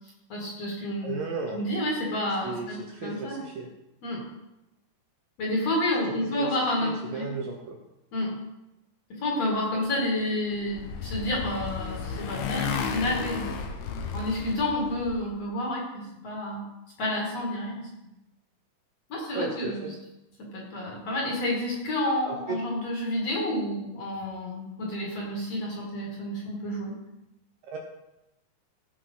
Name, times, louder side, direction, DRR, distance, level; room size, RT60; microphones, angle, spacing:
voice 1, 0.3-1.1 1.5-3.4 4.0-4.2 5.4-7.3 8.1-8.3 9.1-13.5 14.1-16.6 17.0-18.1 19.1-19.9 20.4-27.0, left 1 dB, 45° left, -2 dB, 2.9 m, -30 dB
voice 2, 1.0-1.6 2.4-3.7 6.2-6.6 6.8-7.8 19.3-19.9 22.3-22.6 27.6-27.8, right 4 dB, 70° right, 1 dB, 2.4 m, -35 dB
Motorcycle, 10.2-15.2, left 6 dB, 75° left, 2.9 m, -33 dB
16.0 x 5.8 x 5.6 m, 0.94 s
omnidirectional pair, 4.9 m